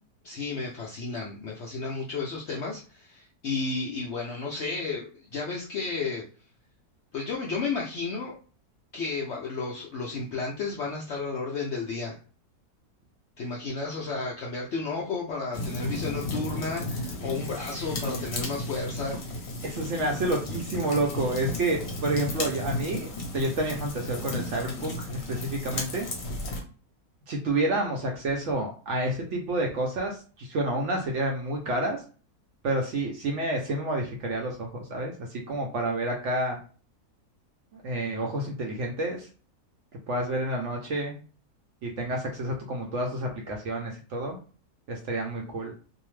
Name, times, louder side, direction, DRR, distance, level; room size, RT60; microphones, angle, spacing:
voice 1, 0.2-6.3 7.1-8.4 8.9-12.2 13.4-19.2, left 4 dB, 70° left, -2 dB, 0.6 m, -32 dB
sound 1, 15.5-26.6, left 1 dB, 50° left, 0.9 m, -34 dB
voice 2, 19.6-26.1 27.3-32.0 32.6-36.6 37.7-39.3 40.1-41.1 41.8-44.4 44.9-45.7, right 1 dB, 65° right, 1 dB, 0.7 m, -29 dB
2.7 x 2.0 x 3.1 m, 0.38 s
omnidirectional pair, 1.7 m